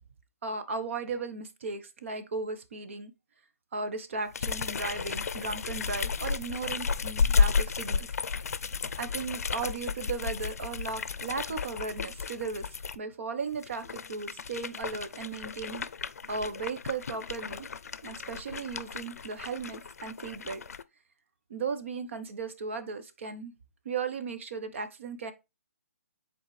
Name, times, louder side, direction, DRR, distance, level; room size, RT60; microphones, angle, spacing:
voice 1, 0.4-3.1 3.7-8.1 9.0-12.7 12.9-15.9 16.3-17.7 18.0-20.6 21.5-23.5 23.8-25.3, right 4 dB, 55° right, 1.0 m, -36 dB
sound 1, 4.3-13.0 13.5-20.8, left 5 dB, 80° left, 0.5 m, -32 dB
7.4 x 4.1 x 3.2 m
hypercardioid pair, 165°, 8 cm